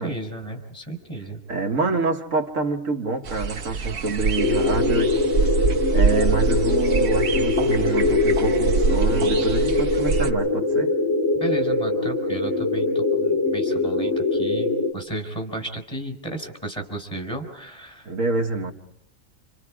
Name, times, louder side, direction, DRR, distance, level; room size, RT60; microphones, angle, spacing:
voice 1, 0.0-1.4 11.3-18.1, right 2 dB, 20° left, 4.5 m, -33 dB
voice 2, 1.5-5.1 5.9-11.0 18.0-18.7, right 3 dB, 70° right, 1.8 m, -26 dB
sound 1, 3.2-10.3, right 5 dB, 85° right, 1.7 m, -25 dB
sound 2, 4.4-14.9, left 2 dB, 60° left, 2.5 m, -22 dB
29.0 x 27.0 x 4.9 m
omnidirectional pair, 1.4 m